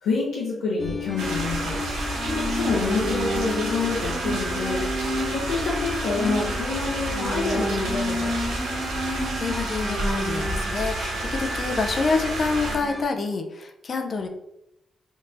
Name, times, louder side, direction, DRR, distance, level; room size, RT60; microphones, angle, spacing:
voice 1, 0.0-1.8 2.3-8.3, left 4 dB, 90° left, -7 dB, 0.7 m, -27 dB
sound 1, 0.8-13.0, left 1 dB, 25° left, 1.1 m, -31 dB
sound 2, 1.2-12.8, right 2 dB, 85° right, 0.7 m, -30 dB
voice 2, 9.1-14.3, left 4 dB, 60° left, 4 dB, 0.5 m, -27 dB
4.4 x 2.9 x 2.5 m, 0.84 s
supercardioid pair, 45°, 0 cm